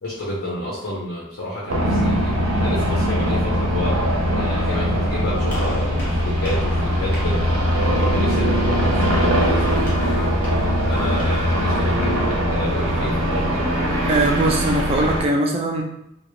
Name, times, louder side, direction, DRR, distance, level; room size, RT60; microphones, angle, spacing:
voice 1, 0.0-10.4 10.9-13.7, left 1 dB, 60° left, -6 dB, 0.6 m, -31 dB
sound 1, 1.7-15.2, equal, 80° right, 0.5 m, -21 dB
Gunshot gunfire, 5.5-11.5, equal, 10° left, 0.7 m, -40 dB
voice 2, 14.1-15.8, right 2 dB, 30° right, 1 dB, 0.3 m, -21 dB
2.2 x 2.0 x 3.0 m, 0.80 s
head